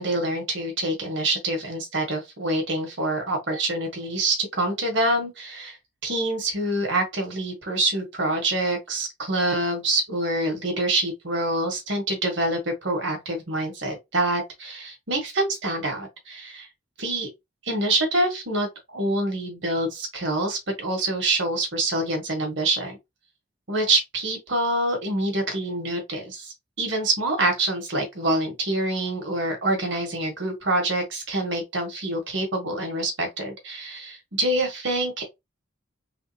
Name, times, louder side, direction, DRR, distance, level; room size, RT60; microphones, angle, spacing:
voice 1, 0.0-5.8 6.0-16.7 17.0-17.3 17.6-23.0 23.7-35.2, right 2 dB, 65° right, 1.3 m, -26 dB
3.5 x 2.5 x 2.7 m
head